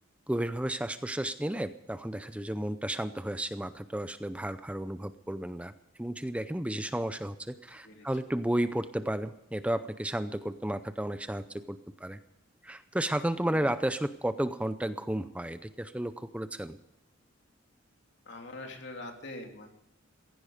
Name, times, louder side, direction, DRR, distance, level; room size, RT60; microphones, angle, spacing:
voice 1, 0.3-5.7 6.0-12.2 12.6-16.8, right 1 dB, 5° right, 11 dB, 0.5 m, -33 dB
voice 2, 7.7-8.1 18.2-19.7, left 2 dB, 60° left, 3 dB, 3.1 m, -44 dB
16.5 x 16.0 x 5.1 m, 0.87 s
head